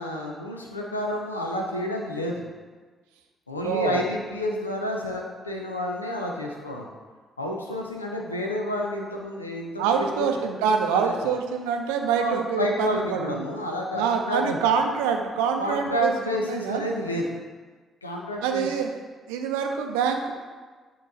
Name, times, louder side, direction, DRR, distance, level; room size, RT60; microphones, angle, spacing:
voice 1, 0.0-2.4 3.5-6.9 7.4-10.3 10.9-11.2 11.9-14.6 15.6-17.3 18.0-18.7, left 1 dB, 90° left, 0 dB, 0.5 m, -30 dB
voice 2, 3.6-4.0 9.8-13.4 13.9-16.1 16.4-16.8 18.4-18.9 19.3-20.3, right 6 dB, 70° right, 4 dB, 0.5 m, -25 dB
8.5 x 3.0 x 3.9 m, 1.4 s
figure-of-eight pair, 45°, 0 cm